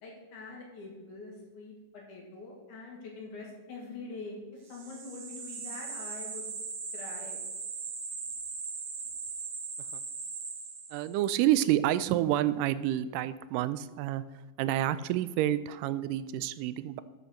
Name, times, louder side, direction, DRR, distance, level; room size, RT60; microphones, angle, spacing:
voice 1, 0.0-4.4 4.7-6.6 6.9-7.4, left 3 dB, 65° left, -2 dB, 3.7 m, -44 dB
sound 1, 4.7-11.2, right 5 dB, 65° right, 3.1 m, -39 dB
voice 2, 10.9-14.2 14.6-17.0, right 13 dB, 85° right, 15 dB, 2.1 m, -28 dB
11.5 x 5.4 x 6.5 m, 1.2 s
omnidirectional pair, 3.7 m